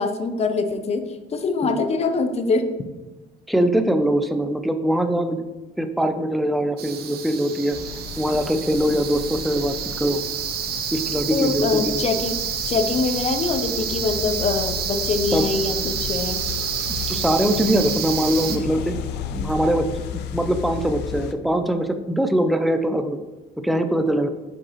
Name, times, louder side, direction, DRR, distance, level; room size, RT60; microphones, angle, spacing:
voice 1, 0.0-2.7 11.3-12.3 12.7-16.4, left 4 dB, 40° left, 7 dB, 0.7 m, -24 dB
voice 2, 3.5-5.4 5.8-7.8 8.2-10.2 10.9-12.0 15.3-15.5 17.1-19.0 19.3-19.9 20.1-23.2 23.6-24.3, right 1 dB, ahead, 8 dB, 0.5 m, -22 dB
sound 1, 6.8-18.6, right 8 dB, 70° right, 0.8 m, -29 dB
sound 2, 7.7-21.3, left 8 dB, 80° left, 0.5 m, -34 dB
7.3 x 5.2 x 3.1 m, 1.2 s
cardioid pair, 110°, 17 cm